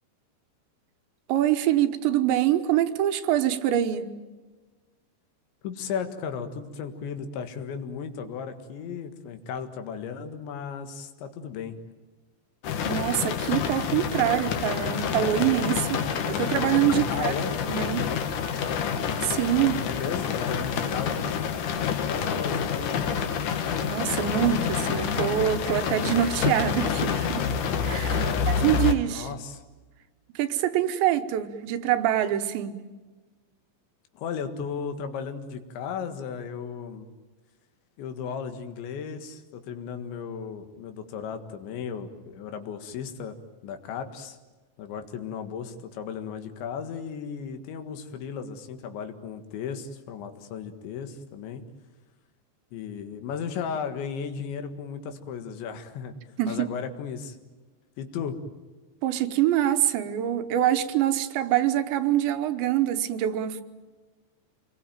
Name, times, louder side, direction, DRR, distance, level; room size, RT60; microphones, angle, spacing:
voice 1, 1.3-4.1 12.9-17.3 17.7-18.1 18.5-18.6 19.2-19.8 23.8-27.5 27.8-29.3 30.4-32.8 56.4-56.7 59.0-63.6, right 11 dB, 75° right, 9 dB, 3.3 m, -25 dB
voice 2, 5.6-11.8 17.1-17.6 19.8-21.2 22.1-23.2 28.1-28.5 29.0-29.6 34.2-37.1 38.0-43.4 43.6-44.4 44.8-51.6 52.7-56.1 56.5-57.4 58.0-58.4, left 6 dB, 75° left, 8 dB, 4.0 m, -35 dB
sound 1, 12.6-28.9, left 7 dB, 60° left, 2.4 m, -28 dB
27.5 x 22.0 x 9.1 m, 1.3 s
omnidirectional pair, 5.3 m